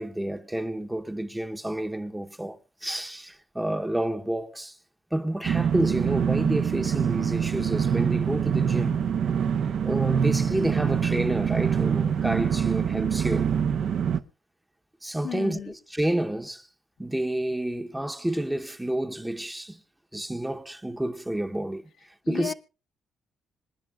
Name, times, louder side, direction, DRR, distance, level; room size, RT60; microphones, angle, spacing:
voice 1, 0.0-4.8 5.1-9.1 9.8-13.5 15.0-16.7 17.0-19.8 20.1-22.5, right 1 dB, 10° right, 0.9 m, -30 dB
sound 1, 5.4-14.2, right 7 dB, 65° right, 0.7 m, -25 dB
voice 2, 15.2-15.7 22.2-22.5, left 9 dB, 70° left, 1.0 m, -33 dB
26.0 x 10.0 x 2.4 m
cardioid pair, 90°, 0 cm